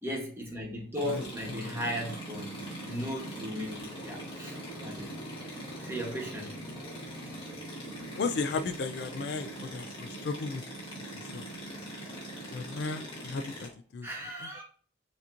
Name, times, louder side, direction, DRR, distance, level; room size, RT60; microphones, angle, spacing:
voice 1, 0.0-2.5 2.8-5.1 5.8-6.6 14.0-14.6, equal, 15° right, 1.2 m, -37 dB
sound 1, 0.9-13.7, right 1 dB, 30° left, 1.6 m, -42 dB
voice 2, 8.2-10.6 11.1-11.5 12.5-14.1 14.4-14.6, left 4 dB, 60° left, 0.3 m, -35 dB
5.9 x 2.9 x 2.5 m
head